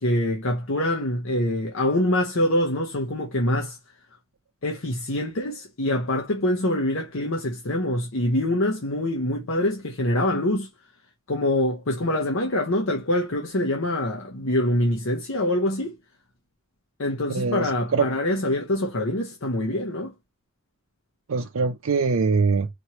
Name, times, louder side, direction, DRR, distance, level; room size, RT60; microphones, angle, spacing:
voice 1, 0.0-3.8 4.6-10.7 11.3-16.0 17.0-20.1, left 1 dB, 70° left, 1.0 m, -25 dB
voice 2, 17.3-18.1 21.3-22.7, right 4 dB, 80° right, 0.5 m, -23 dB
4.2 x 2.9 x 3.1 m
head